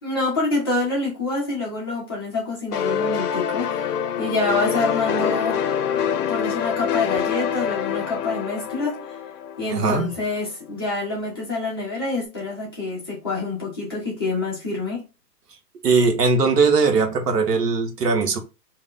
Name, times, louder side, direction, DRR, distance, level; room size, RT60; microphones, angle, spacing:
voice 1, 0.0-5.6 6.3-9.2 9.6-15.0, left 3 dB, 15° left, 0.4 m, -27 dB
sound 1, 2.7-10.2, left 8 dB, 70° left, 0.5 m, -25 dB
voice 2, 9.7-10.1 15.8-18.4, right 4 dB, 70° right, 0.9 m, -19 dB
2.4 x 2.1 x 3.6 m
hypercardioid pair, 130°, 49 cm